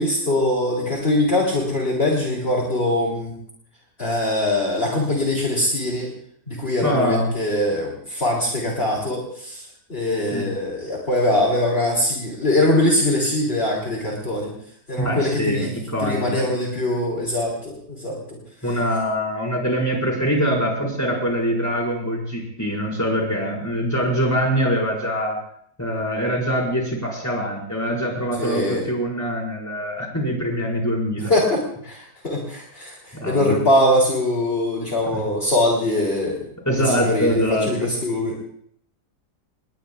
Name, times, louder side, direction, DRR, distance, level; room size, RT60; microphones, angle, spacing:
voice 1, 0.0-3.3 4.0-6.1 6.5-9.6 9.9-14.5 14.9-15.7 16.0-18.4 28.4-28.8 31.3-36.5 36.9-38.4, left 1 dB, 35° left, -2 dB, 3.6 m, -22 dB
voice 2, 6.8-7.3 10.3-10.5 15.0-16.4 18.6-25.4 25.8-31.3 33.1-33.6 35.1-35.2 36.6-37.9, equal, 10° left, -2 dB, 5.3 m, -23 dB
28.0 x 21.0 x 2.4 m, 0.65 s
omnidirectional pair, 1.7 m